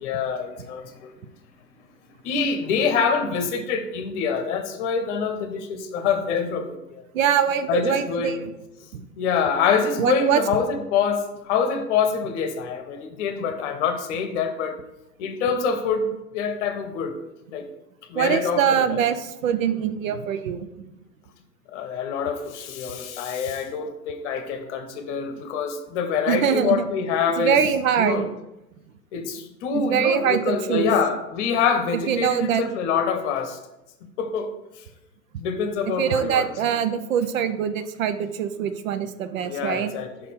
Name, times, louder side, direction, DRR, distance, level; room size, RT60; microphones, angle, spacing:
voice 1, 0.0-1.1 2.2-7.0 7.7-8.3 9.2-14.8 15.2-17.1 17.5-17.6 18.1-19.0 21.7-27.6 28.0-28.3 29.1-33.6 34.2-34.5 35.4-36.5 39.4-40.3, left 6 dB, 45° left, 8 dB, 1.0 m, -25 dB
voice 2, 7.1-8.5 8.9-9.1 10.0-10.4 18.1-21.0 26.3-26.9 27.4-28.3 29.7-30.9 32.1-32.6 36.0-39.9, right 8 dB, 55° right, 11 dB, 0.6 m, -23 dB
5.6 x 4.1 x 5.2 m, 0.92 s
figure-of-eight pair, 105°, 50 cm